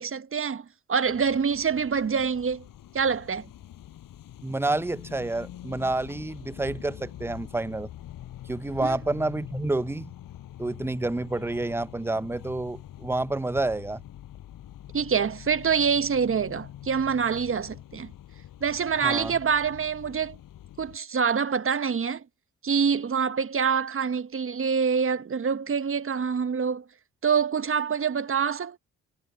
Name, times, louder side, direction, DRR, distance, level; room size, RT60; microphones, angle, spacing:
voice 1, 0.0-2.6 2.9-3.5 8.8-9.0 14.9-18.1 18.6-20.4 20.8-22.2 22.6-26.8 27.2-28.8, right 6 dB, 35° right, 1.3 m, -26 dB
sound 1, 1.0-21.0, left 12 dB, 70° left, 7.1 m, -45 dB
voice 2, 4.4-7.9 8.5-10.1 10.6-14.0 19.0-19.3, right 2 dB, 5° right, 0.7 m, -29 dB
hypercardioid pair, 50°, 35 cm